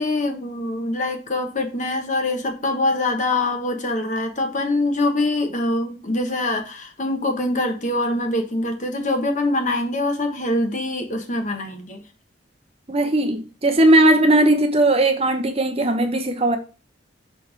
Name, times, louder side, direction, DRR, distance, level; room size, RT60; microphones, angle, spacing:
voice 1, 0.0-12.0, left 2 dB, 40° left, 1.2 m, -24 dB
voice 2, 12.9-16.6, right 1 dB, 30° right, 0.8 m, -18 dB
6.3 x 3.4 x 4.9 m
head